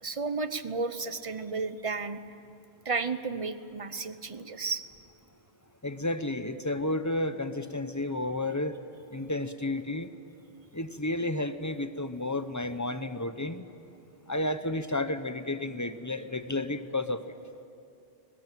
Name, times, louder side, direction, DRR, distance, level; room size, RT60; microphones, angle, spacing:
voice 1, 0.0-2.2 2.8-4.8, right 4 dB, 35° right, 12 dB, 0.9 m, -33 dB
voice 2, 5.8-8.8 9.1-10.1 10.7-13.6 14.3-17.2, left 2 dB, 20° left, 10 dB, 0.9 m, -31 dB
22.5 x 20.0 x 9.1 m, 2.7 s
omnidirectional pair, 1.1 m